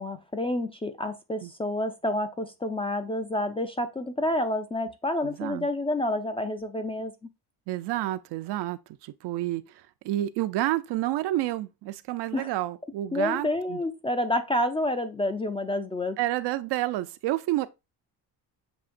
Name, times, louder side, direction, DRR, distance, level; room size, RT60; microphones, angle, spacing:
voice 1, 0.0-7.1 12.3-12.5 13.1-16.2, left 1 dB, 15° left, 0.3 m, -29 dB
voice 2, 5.2-5.7 7.7-9.6 10.0-13.8 16.2-17.7, right 15 dB, 80° right, 0.5 m, -29 dB
7.1 x 2.8 x 2.5 m
cardioid pair, 125°, 41 cm